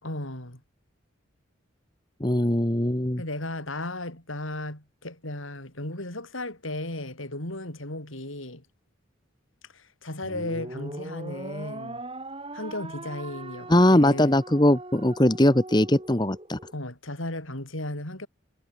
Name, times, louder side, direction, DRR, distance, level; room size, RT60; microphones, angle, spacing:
voice 1, 0.0-0.6 3.2-8.6 9.7-12.0 12.5-14.4 16.7-18.3, left 1 dB, 80° left, 7.1 m, -35 dB
voice 2, 2.2-3.2 13.7-16.6, left 1 dB, 20° left, 1.6 m, -21 dB
sound 1, 10.2-16.7, right 2 dB, 25° right, 3.2 m, -40 dB
head